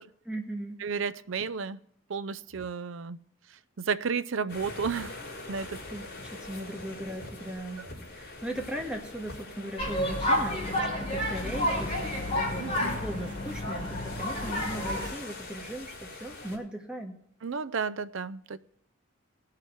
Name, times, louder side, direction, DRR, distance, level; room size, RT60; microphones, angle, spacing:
voice 1, 0.3-0.8 5.9-17.2, right 1 dB, 5° right, 1 dB, 1.8 m, -38 dB
voice 2, 0.8-1.8 2.1-3.2 3.8-5.2 5.5-5.8 12.6-13.0 17.4-18.6, right 5 dB, 65° right, 15 dB, 0.5 m, -32 dB
sound 1, 4.5-16.6, left 2 dB, 50° left, 4.4 m, -43 dB
sound 2, 9.8-15.1, left 1 dB, 30° left, 4.0 m, -30 dB
19.0 x 6.7 x 4.5 m, 0.69 s
head